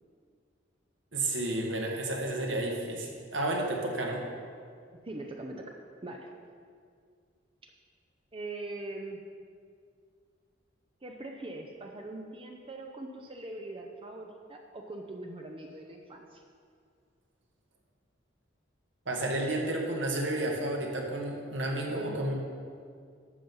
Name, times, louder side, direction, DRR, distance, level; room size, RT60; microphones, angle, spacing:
voice 1, 1.1-4.2 19.1-22.3, right 1 dB, 70° right, 0 dB, 1.8 m, -31 dB
voice 2, 5.0-5.7 6.0-6.3 7.6-7.7 8.3-9.2 11.0-16.4 21.9-22.2, right 2 dB, 30° right, 2 dB, 0.7 m, -41 dB
12.0 x 7.3 x 5.5 m, 2.2 s
head